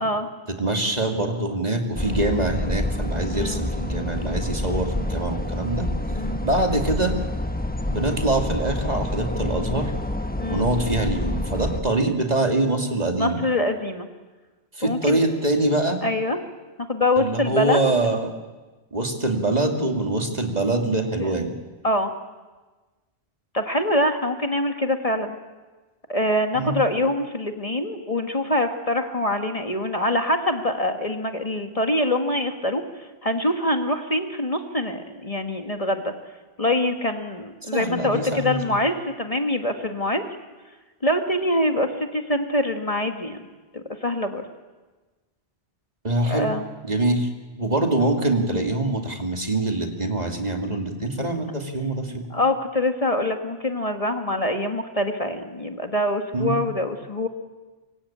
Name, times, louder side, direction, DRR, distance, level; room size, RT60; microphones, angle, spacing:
voice 1, 0.6-5.9 6.4-7.2 7.9-9.9 10.5-13.4 14.7-16.0 17.2-18.3 18.9-21.5 26.5-26.8 37.6-38.6 46.0-46.5 46.8-47.3 47.6-52.3 56.3-56.6, right 2 dB, 40° right, 4 dB, 2.6 m, -24 dB
sound 1, 1.9-11.8, left 1 dB, 10° left, 1.1 m, -28 dB
voice 2, 3.3-3.6 6.1-6.4 10.4-10.7 13.2-14.1 14.8-15.2 16.0-16.4 16.9-17.9 21.2-21.3 21.8-22.1 23.5-25.4 26.1-36.1 36.6-40.2 41.0-43.4 43.7-44.4 46.3-46.6 52.3-57.3, left 1 dB, 30° left, 5 dB, 1.8 m, -24 dB
25.0 x 24.5 x 8.7 m, 1.2 s
omnidirectional pair, 1.1 m